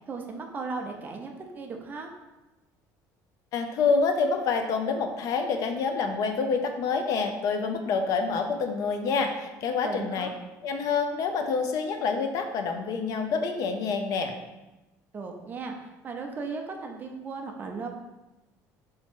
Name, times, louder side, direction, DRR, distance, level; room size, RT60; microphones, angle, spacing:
voice 1, 0.1-2.1 9.8-10.3 15.1-17.9, right 4 dB, 25° right, 2 dB, 0.5 m, -36 dB
voice 2, 3.5-10.3 10.6-14.3, left 5 dB, 55° left, 6 dB, 0.5 m, -27 dB
3.5 x 3.0 x 4.4 m, 1.1 s
cardioid pair, 150°, 7 cm